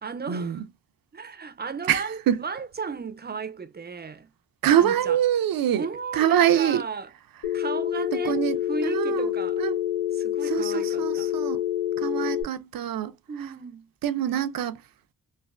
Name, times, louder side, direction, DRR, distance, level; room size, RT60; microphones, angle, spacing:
voice 1, 0.0-0.6 1.1-4.3 4.7-5.2 5.7-7.1 7.5-9.6 10.1-11.3 13.3-13.9, right 5 dB, 30° right, 0.5 m, -35 dB
voice 2, 1.9-2.4 4.6-5.9 6.1-6.8 8.2-9.3 9.6-9.7 10.5-11.6 12.0-13.1 14.0-14.8, right 10 dB, 80° right, 0.6 m, -24 dB
Telephone, 7.4-12.4, left 12 dB, 85° left, 0.9 m, -27 dB
3.3 x 2.5 x 2.4 m
wide cardioid pair, 105°, 34 cm